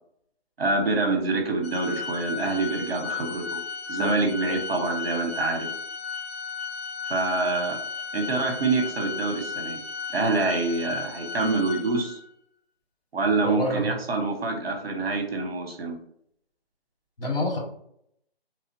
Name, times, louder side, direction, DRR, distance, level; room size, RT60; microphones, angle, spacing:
voice 1, 0.6-3.6 3.9-5.7 7.1-7.8 8.1-9.8 10.1-12.2 13.1-16.0, right 3 dB, 65° right, 2 dB, 0.9 m, -26 dB
Organ, 1.6-12.3, left 5 dB, 80° left, 0.6 m, -35 dB
voice 2, 13.4-14.0 17.2-17.6, left 1 dB, 60° left, -2 dB, 1.5 m, -27 dB
3.2 x 2.1 x 2.5 m, 0.68 s
hypercardioid pair, 170°, 32 cm